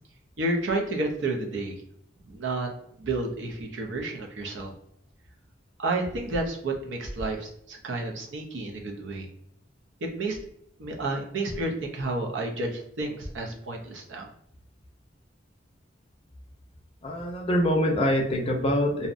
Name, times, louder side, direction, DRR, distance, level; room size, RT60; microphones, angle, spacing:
voice 1, 0.4-1.7 2.3-2.7 3.0-4.7 5.8-9.3 10.0-10.4 10.8-14.3, right 2 dB, 75° right, 1 dB, 0.5 m, -30 dB
voice 2, 17.0-19.1, equal, 30° left, 1 dB, 0.5 m, -24 dB
2.6 x 2.0 x 2.5 m, 0.72 s
head